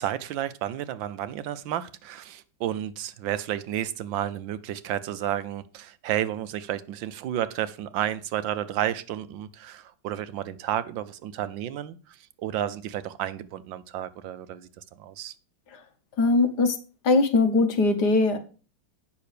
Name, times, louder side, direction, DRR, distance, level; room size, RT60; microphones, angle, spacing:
voice 1, 0.0-14.7 15.0-15.3, right 11 dB, 80° right, 1.4 m, -31 dB
voice 2, 16.2-16.8 17.0-18.4, left 3 dB, 60° left, 1.7 m, -21 dB
8.5 x 6.1 x 6.7 m
omnidirectional pair, 2.1 m